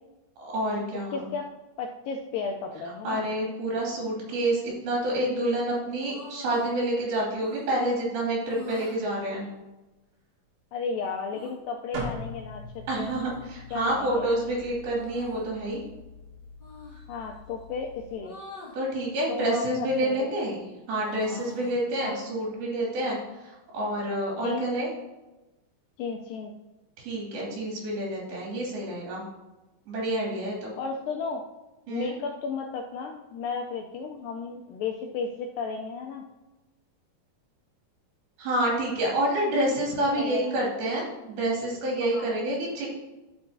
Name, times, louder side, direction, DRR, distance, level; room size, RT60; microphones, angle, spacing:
voice 1, 0.4-1.2 3.0-9.5 11.9-12.0 12.9-15.8 18.7-20.6 20.9-23.2 23.4-24.9 27.0-29.2 29.9-30.7 31.9-32.1 38.4-42.9, right 1 dB, 70° right, -3 dB, 4.3 m, -28 dB
voice 2, 1.1-1.4 1.8-3.3 10.7-12.6 13.0-13.2 13.7-14.3 17.1-18.4 19.3-20.3 22.0-22.2 24.4-24.7 26.0-26.5 30.8-31.4 31.9-36.2 40.2-40.5 42.0-42.3, left 5 dB, 85° left, 2 dB, 2.0 m, -34 dB
sound 1, 6.0-6.7 7.4-7.7 8.4-9.0 11.3-11.5 12.9-13.6 14.9-15.5 16.6-17.0 18.2-18.8 19.7-20.2 20.6-21.8, left 3 dB, 55° left, 0.5 m, -45 dB
sound 2, 11.9-18.1, left 2 dB, 50° right, 3.1 m, -43 dB
12.5 x 5.6 x 2.7 m, 1.1 s
omnidirectional pair, 4.5 m